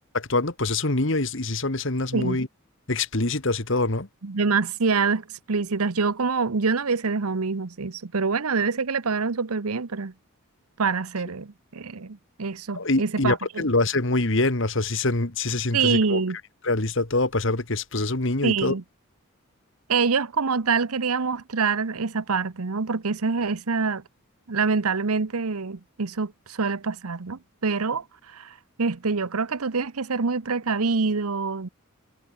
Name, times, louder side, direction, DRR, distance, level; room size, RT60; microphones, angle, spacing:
voice 1, 0.1-2.5 2.9-4.1 12.7-16.2 16.6-18.8, left 2 dB, 60° left, 1.9 m, -25 dB
voice 2, 4.2-10.1 10.8-13.7 15.7-16.4 18.4-18.8 19.9-24.0 24.5-28.0 28.3-31.7, right 4 dB, 90° right, 0.9 m, -25 dB
head